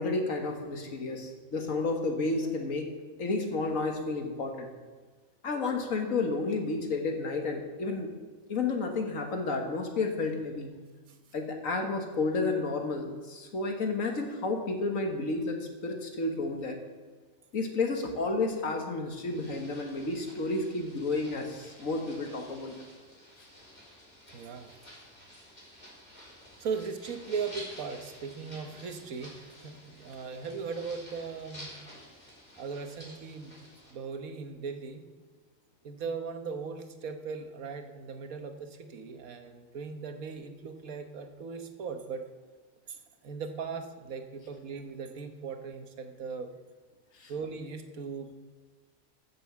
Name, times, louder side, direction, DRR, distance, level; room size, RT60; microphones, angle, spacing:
voice 1, 0.0-2.9 3.2-4.7 5.4-8.1 8.5-10.7 11.3-16.8 17.5-22.7 47.2-47.3, left 3 dB, 75° left, 3 dB, 1.9 m, -31 dB
sound 1, 19.3-33.9, equal, 30° left, 4.5 m, -51 dB
voice 2, 24.3-24.8 26.6-31.7 32.6-33.6 33.9-35.0 35.8-42.3 42.9-46.5 47.3-48.3, right 5 dB, 85° right, 6 dB, 1.5 m, -38 dB
13.5 x 6.2 x 7.3 m, 1.4 s
omnidirectional pair, 1.4 m